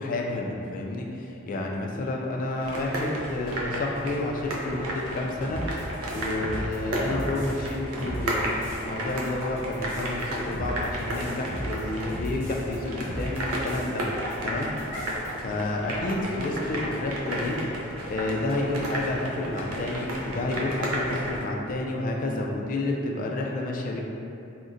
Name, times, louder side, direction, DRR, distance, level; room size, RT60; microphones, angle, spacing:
voice 1, 0.0-8.5 8.8-14.7 15.4-17.6 17.9-24.0, left 2 dB, 40° left, 0 dB, 0.3 m, -30 dB
sound 1, 2.6-21.4, equal, 90° right, 0.4 m, -33 dB
sound 2, 5.5-7.7 8.0-8.8 9.1-12.7 13.0-14.0 14.3-14.4 14.6-15.3, equal, 10° right, 0.7 m, -36 dB
Dog, 11.7-12.1 12.7-12.8 13.6-13.7 14.1-15.2 15.5-15.7 16.0-17.5 17.8-17.9 18.2-18.3 18.6-18.7 19.1-19.2 19.6-19.7 19.9-20.0, equal, 45° right, 0.7 m, -43 dB
3.7 x 2.1 x 2.5 m, 2.8 s
head